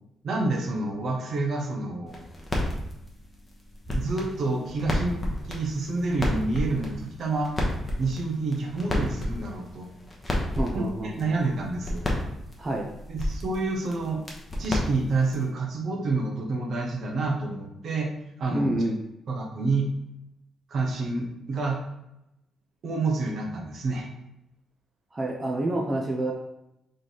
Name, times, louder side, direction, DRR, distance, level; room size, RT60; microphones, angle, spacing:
voice 1, 0.2-2.2 3.9-5.2 5.5-7.5 8.0-9.9 10.7-12.1 13.1-14.2 14.6-18.1 18.4-18.7 19.3-19.9 20.7-21.8 22.8-24.1, right 3 dB, 50° right, 2 dB, 0.8 m, -28 dB
vinyl-scratch, 2.1-15.5, left 1 dB, 15° left, 0.9 m, -32 dB
voice 2, 10.5-11.3 12.6-12.9 18.5-19.0 25.1-26.3, right 1 dB, 20° right, 0 dB, 0.5 m, -28 dB
3.9 x 3.2 x 4.0 m, 0.86 s
cardioid pair, 140°, 0 cm